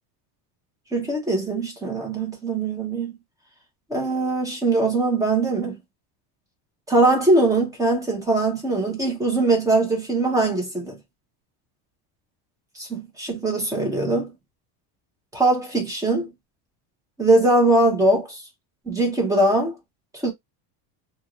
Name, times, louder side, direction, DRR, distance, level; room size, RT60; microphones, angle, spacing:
voice 1, 0.9-3.1 3.9-5.8 6.9-11.0 12.8-14.3 15.3-16.3 17.2-18.4 18.9-19.8 20.2-20.3, right 2 dB, 5° right, 0.7 m, -21 dB
2.5 x 2.5 x 2.9 m
cardioid pair, 170°, 48 cm